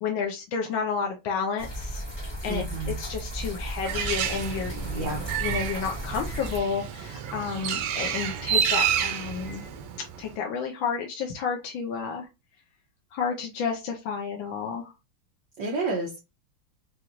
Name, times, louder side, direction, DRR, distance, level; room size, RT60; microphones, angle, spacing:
voice 1, 0.0-2.0 2.4-9.6 10.2-12.3 13.1-14.9, left 6 dB, 70° left, 1 dB, 1.4 m, -31 dB
sound 1, 1.6-6.6, right 1 dB, 15° left, 1.2 m, -35 dB
voice 2, 2.5-2.9 4.8-5.2 15.6-16.2, right 3 dB, 60° right, -2 dB, 1.4 m, -30 dB
Bird, 3.8-10.3, right 8 dB, 80° right, 1.7 m, -29 dB
4.9 x 2.6 x 2.9 m, 0.26 s
omnidirectional pair, 2.4 m